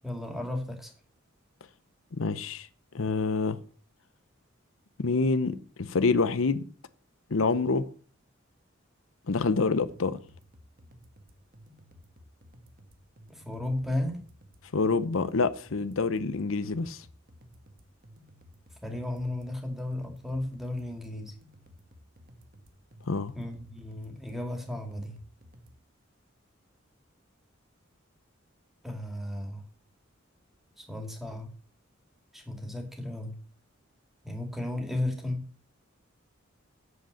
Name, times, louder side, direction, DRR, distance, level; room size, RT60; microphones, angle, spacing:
voice 1, 0.0-0.9 13.3-14.2 18.8-21.3 23.3-25.2 28.8-29.7 30.8-31.5 32.3-33.4 34.2-35.4, left 1 dB, ahead, 2.3 m, -34 dB
voice 2, 2.1-2.7 2.9-3.6 5.0-6.6 7.3-7.9 9.3-10.2 14.7-17.0 23.1-23.4, left 4 dB, 85° left, 0.7 m, -27 dB
sound 1, 9.8-25.8, equal, 45° right, 1.6 m, -55 dB
8.1 x 7.8 x 6.7 m
head